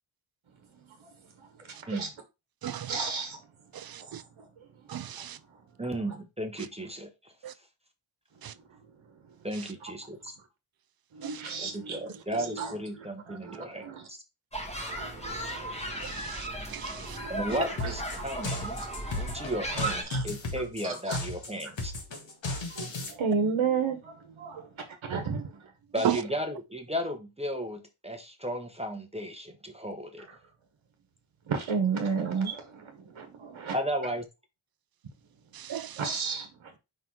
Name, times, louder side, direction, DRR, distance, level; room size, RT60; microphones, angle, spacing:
voice 1, 1.4-2.1 2.9-3.4 4.1-4.7 5.2-5.3 11.1-14.1 14.9-16.3 16.9-18.2 18.8-18.9 19.7-20.3 20.8-21.2 22.7-24.7 25.1-25.4 30.3-30.4 31.5-33.8 36.0-36.7, right 5 dB, 70° right, 1.2 m, -34 dB
voice 2, 2.6-2.9 3.7-4.2 4.9-5.4 7.4-7.5 8.4-8.5 11.2-11.4 16.0-17.2 26.0-26.2 35.5-36.0, right 10 dB, 50° right, 0.4 m, -34 dB
voice 3, 5.8-7.3 9.4-10.3 11.6-14.2 17.3-18.8 19.2-21.9 25.9-30.2 33.7-34.3, equal, 15° right, 0.8 m, -34 dB
sound 1, 14.5-20.0, right 1 dB, 10° left, 1.6 m, -36 dB
sound 2, 17.8-23.1, left 2 dB, 60° left, 1.7 m, -35 dB
5.4 x 3.9 x 4.6 m
wide cardioid pair, 160°, 50 cm